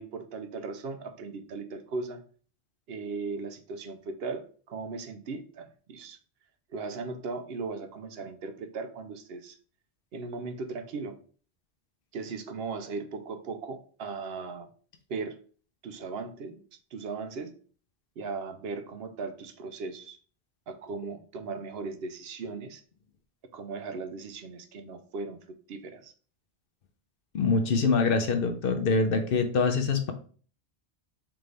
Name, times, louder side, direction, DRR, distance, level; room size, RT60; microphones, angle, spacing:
voice 1, 0.0-2.2 2.9-6.2 6.7-9.5 10.1-11.2 12.1-14.7 15.1-15.4 15.8-16.6 16.9-17.5 18.2-20.2 20.7-22.8 23.5-25.4 25.7-26.1, right 4 dB, 70° right, 8 dB, 0.8 m, -37 dB
voice 2, 27.3-30.1, left 4 dB, 65° left, 7 dB, 0.8 m, -24 dB
3.8 x 3.4 x 3.3 m, 0.41 s
omnidirectional pair, 1.1 m